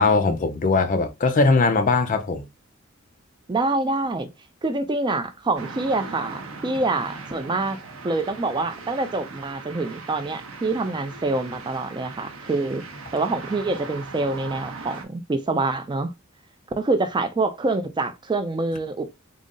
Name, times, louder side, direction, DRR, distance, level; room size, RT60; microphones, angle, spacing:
voice 1, 0.0-2.5, left 3 dB, 40° left, 0.4 m, -20 dB
voice 2, 3.5-4.3 4.6-7.8 8.0-12.8 13.1-16.1 16.8-19.1, right 3 dB, 20° right, 0.3 m, -26 dB
sound 1, 5.6-15.0, right 4 dB, 85° right, 0.8 m, -39 dB
3.7 x 2.0 x 3.7 m
head